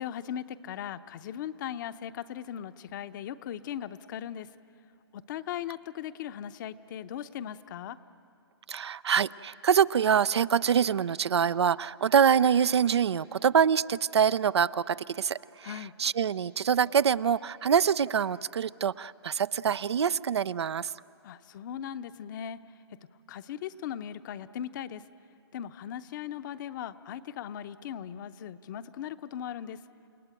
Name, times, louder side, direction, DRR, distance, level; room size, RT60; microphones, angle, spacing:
voice 1, 0.0-4.5 5.1-8.0 15.6-15.9 21.2-22.6 23.3-25.0 25.5-29.8, left 10 dB, 45° left, 12 dB, 0.8 m, -38 dB
voice 2, 8.7-20.9, right 7 dB, 80° right, 18 dB, 0.5 m, -25 dB
29.5 x 18.0 x 9.0 m, 2.9 s
hypercardioid pair, 130°, 14 cm